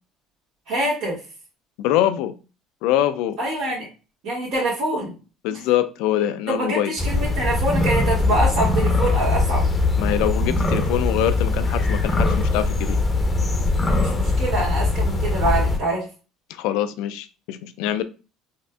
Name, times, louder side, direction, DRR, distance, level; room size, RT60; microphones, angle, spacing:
voice 1, 0.7-1.2 3.4-3.9 4.2-5.1 6.5-9.7 14.0-16.1, right 1 dB, 75° right, -8 dB, 1.7 m, -25 dB
voice 2, 1.8-2.3 2.8-3.4 5.4-6.9 10.0-13.0 16.5-18.0, left 12 dB, 80° left, 11 dB, 0.4 m, -24 dB
sound 1, 7.0-15.8, left 2 dB, 20° left, 0.7 m, -21 dB
4.1 x 2.5 x 2.2 m, 0.32 s
supercardioid pair, 95°, 0 cm